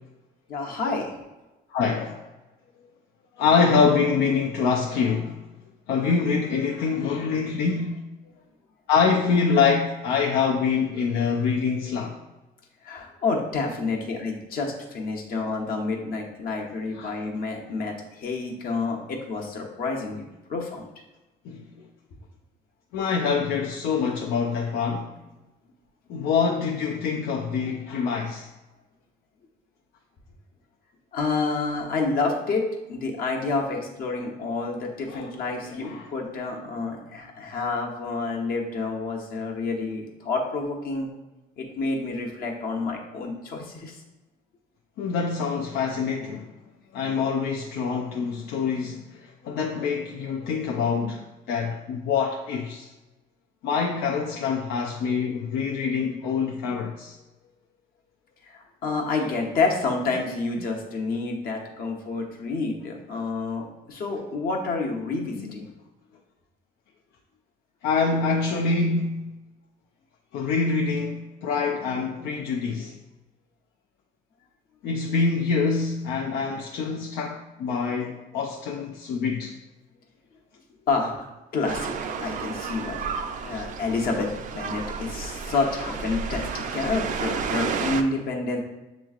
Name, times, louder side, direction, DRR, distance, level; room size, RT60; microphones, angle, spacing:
voice 1, 0.5-1.1 12.8-20.2 20.5-20.9 31.1-41.1 41.6-44.0 58.5-65.7 80.9-81.2 81.5-81.9 82.2-83.1 83.4-84.3 84.5-88.6, left 3 dB, 60° left, 1.0 m, -29 dB
voice 2, 1.7-2.2 3.4-5.4 5.9-8.0 8.9-12.2 17.0-17.1 21.5-21.6 22.9-25.1 26.1-28.5 35.1-35.3 35.6-36.0 45.0-46.5 46.9-52.9 53.6-57.2 65.4-65.5 67.8-69.3 70.3-72.9 74.8-79.5 85.8-85.9, left 5 dB, 80° left, 0.5 m, -25 dB
sound 1, 81.7-88.0, right 6 dB, 50° right, 0.4 m, -32 dB
7.0 x 3.1 x 2.4 m
cardioid pair, 110°, 17 cm